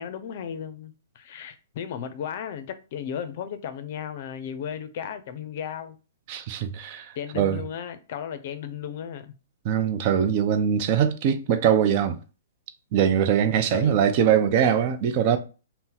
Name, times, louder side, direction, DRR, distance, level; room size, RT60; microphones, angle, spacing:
voice 1, 0.0-6.0 7.2-9.3 13.7-14.0, left 8 dB, 55° left, 0.5 m, -35 dB
voice 2, 6.3-7.1 7.4-7.6 9.6-12.2 12.9-15.4, right 8 dB, 45° right, 0.5 m, -22 dB
2.7 x 2.1 x 3.7 m
hypercardioid pair, 130°, 0 cm